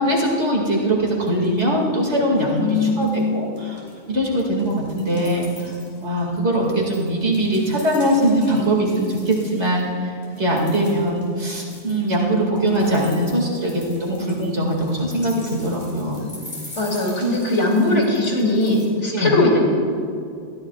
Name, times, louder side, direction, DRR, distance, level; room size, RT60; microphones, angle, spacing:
voice 1, 0.0-3.8 4.1-5.7 6.0-16.3 19.1-19.3, right 1 dB, 70° right, -2 dB, 2.7 m, -21 dB
sound 1, 0.9-1.0 1.3-1.8 2.1-3.3 3.6-9.8 10.2-18.9, left 1 dB, 40° left, 3.7 m, -44 dB
voice 2, 2.6-3.3 16.7-19.6, left 2 dB, 80° left, -2 dB, 3.0 m, -20 dB
21.0 x 14.0 x 2.4 m, 2.4 s
omnidirectional pair, 1.2 m